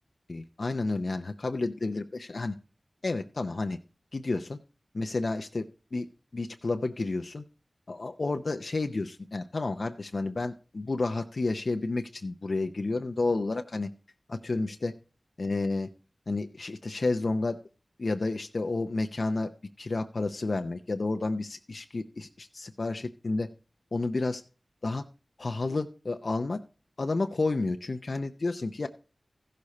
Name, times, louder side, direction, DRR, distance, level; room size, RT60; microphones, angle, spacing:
voice 1, 0.3-2.5 3.0-3.8 4.1-4.6 4.9-6.1 6.3-7.4 7.9-13.9 14.3-14.9 15.4-15.9 16.3-17.6 18.0-19.5 19.8-23.5 23.9-24.4 24.8-25.0 25.4-26.6 27.0-28.9, left 3 dB, 70° left, 6 dB, 0.6 m, -31 dB
15.0 x 6.6 x 4.2 m, 0.36 s
wide cardioid pair, 60°, 0 cm